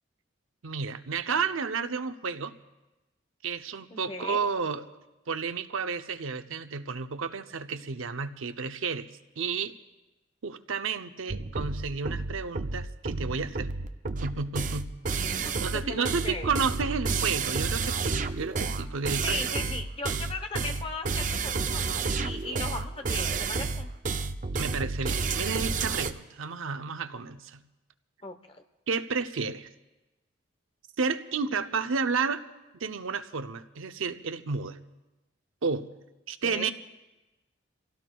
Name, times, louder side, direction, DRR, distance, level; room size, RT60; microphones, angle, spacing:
voice 1, 0.6-2.5 3.4-4.8 5.3-9.1 9.4-9.7 10.4-13.7 14.2-14.9 15.6-19.6 24.6-27.6 28.9-29.7 31.0-32.4 32.8-34.8 35.6-35.9 36.3-36.7, right 5 dB, 90° right, 9 dB, 0.6 m, -31 dB
voice 2, 3.9-4.5 15.4-16.5 19.2-23.9 28.2-28.6 36.4-36.7, left 3 dB, 25° left, 6 dB, 0.9 m, -37 dB
sound 1, 11.3-26.1, right 4 dB, 40° right, 0.5 m, -30 dB
28.0 x 16.5 x 2.3 m, 1.1 s
head